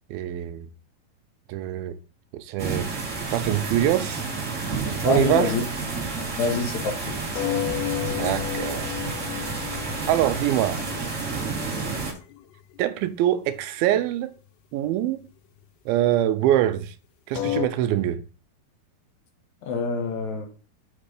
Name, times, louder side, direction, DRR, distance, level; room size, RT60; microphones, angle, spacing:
voice 1, 0.1-0.7 1.5-2.0 2.3-2.9 3.3-4.3 4.6-4.7 5.0-5.6 8.2-8.9 10.1-10.8 12.8-14.3 14.7-15.2 15.9-16.9 17.3-18.2, right 12 dB, 85° right, 2.4 m, -24 dB
sound 1, 2.6-12.1, right 4 dB, 40° right, 1.0 m, -30 dB
voice 2, 5.1-5.6 6.4-7.2 19.6-20.5, left 4 dB, 65° left, 2.0 m, -26 dB
sound 2, 7.4-12.4 12.7-12.8 13.1-13.2 13.6-13.7 17.4-17.7, left 13 dB, 80° left, 1.8 m, -31 dB
6.0 x 5.1 x 4.9 m
omnidirectional pair, 4.3 m